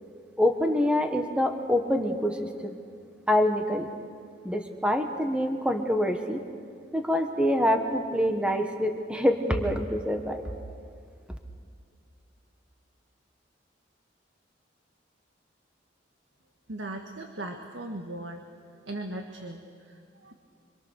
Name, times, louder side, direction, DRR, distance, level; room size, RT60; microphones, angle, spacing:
voice 1, 0.4-2.8 3.3-3.9 4.4-6.4 6.9-10.4, equal, 5° right, 4 dB, 1.5 m, -26 dB
voice 2, 16.7-18.4 18.7-20.3, right 1 dB, 90° right, 3 dB, 1.7 m, -38 dB
27.0 x 25.0 x 6.7 m, 2.3 s
head